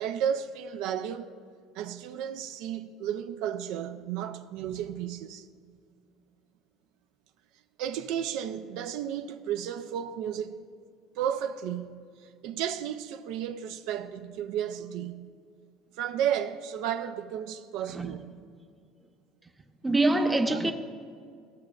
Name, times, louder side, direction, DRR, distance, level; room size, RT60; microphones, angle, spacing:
voice 1, 0.0-1.3 1.7-5.5 7.8-10.6 11.2-11.9 12.4-15.3 16.0-18.3 20.4-20.6, right 9 dB, 70° right, 0.5 m, -33 dB
voice 2, 19.8-20.7, right 2 dB, 15° right, 0.7 m, -24 dB
17.0 x 6.3 x 2.4 m
supercardioid pair, 95°, 0 cm